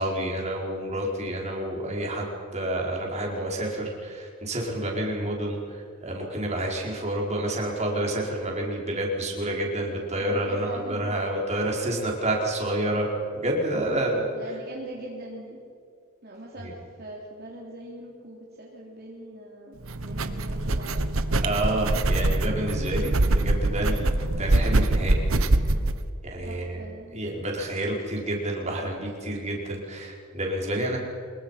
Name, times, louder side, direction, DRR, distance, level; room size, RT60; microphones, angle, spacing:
voice 1, 0.0-2.3 2.5-14.2 16.6-16.7 21.4-25.2 26.2-26.8 27.1-31.0, right 1 dB, 30° right, -1 dB, 4.9 m, -29 dB
voice 2, 10.2-11.2 13.9-14.0 14.3-15.6 16.2-21.1 26.4-27.2, right 1 dB, 50° right, -3 dB, 3.3 m, -42 dB
sound 1, 19.8-26.0, right 2 dB, 70° right, 1.2 m, -24 dB
25.5 x 22.5 x 5.8 m, 2.3 s
head